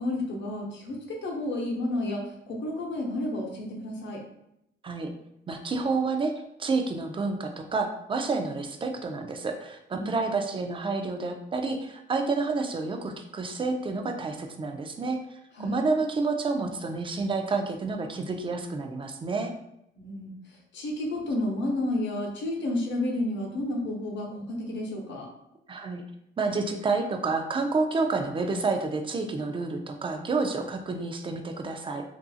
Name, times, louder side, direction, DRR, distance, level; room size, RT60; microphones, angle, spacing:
voice 1, 0.0-4.2 9.9-10.2 15.5-15.8 20.0-20.4 20.7-25.3, left 1 dB, 65° left, 0 dB, 0.8 m, -31 dB
voice 2, 5.5-6.3 6.6-19.5 25.7-26.0 26.4-32.0, right 3 dB, 25° right, 5 dB, 0.4 m, -29 dB
2.6 x 2.5 x 2.3 m, 0.80 s
cardioid pair, 90°, 20 cm